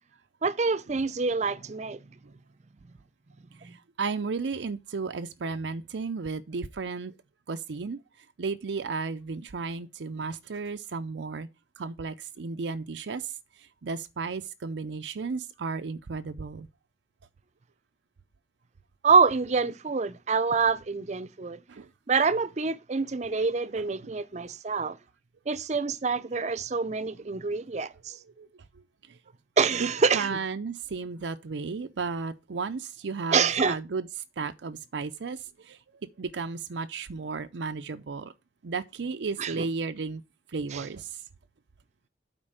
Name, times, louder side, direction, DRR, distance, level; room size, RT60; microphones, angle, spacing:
voice 1, 0.4-2.0 3.6-3.7 19.0-21.6 22.1-25.0 25.5-28.1 29.6-30.4 33.3-33.8 39.4-39.6 40.7-40.9, right 5 dB, 40° right, 0.5 m, -26 dB
voice 2, 3.6-7.1 7.5-8.0 8.4-11.5 11.8-13.3 13.6-16.7 21.7-21.9 24.0-24.2 28.4-28.5 29.8-29.9 30.1-34.1 34.4-35.8 36.2-38.3 38.6-40.2 40.5-41.2, right 4 dB, 90° right, 0.5 m, -34 dB
8.8 x 4.5 x 6.6 m
head